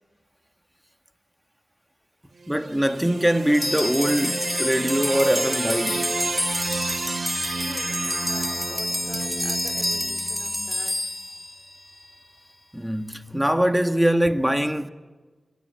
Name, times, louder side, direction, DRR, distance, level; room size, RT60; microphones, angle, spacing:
sound 1, 2.4-10.7, right 4 dB, 60° right, 2.0 m, -32 dB
voice 1, 2.5-6.1 12.7-14.9, equal, 5° right, 1.7 m, -22 dB
sound 2, 3.5-12.1, left 1 dB, 10° left, 3.2 m, -28 dB
voice 2, 7.6-11.1 11.5-11.6, left 2 dB, 55° left, 3.9 m, -43 dB
27.5 x 24.0 x 7.7 m
cardioid pair, 40°, 0 cm